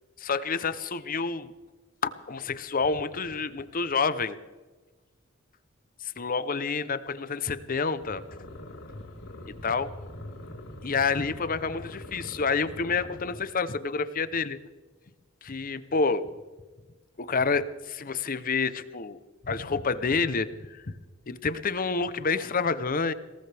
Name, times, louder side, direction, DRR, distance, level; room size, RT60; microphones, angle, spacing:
voice 1, 0.2-1.5 2.0-4.4 6.0-8.2 9.6-9.9 10.8-14.6 15.4-16.3 17.2-19.2 19.4-20.9 21.3-23.1, left 4 dB, 40° left, 14 dB, 0.7 m, -28 dB
sound 1, 8.0-13.4, left 1 dB, 85° left, 4.7 m, -43 dB
22.0 x 18.5 x 3.4 m, 1.3 s
head